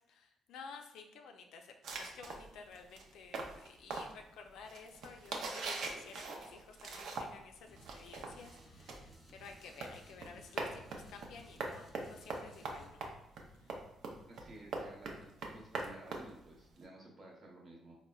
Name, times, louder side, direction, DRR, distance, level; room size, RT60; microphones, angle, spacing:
voice 1, 0.1-13.1 13.6-13.7, left 5 dB, 85° left, 4 dB, 0.4 m, -53 dB
sound 1, 1.8-7.5 7.8-16.8, right 3 dB, 75° right, 0.4 m, -43 dB
sound 2, 7.7-12.9, right 1 dB, 5° right, 0.7 m, -59 dB
voice 2, 14.3-18.0, right 2 dB, 45° right, -1 dB, 0.9 m, -54 dB
3.9 x 2.0 x 2.3 m, 0.82 s
cardioid pair, 90°, 0 cm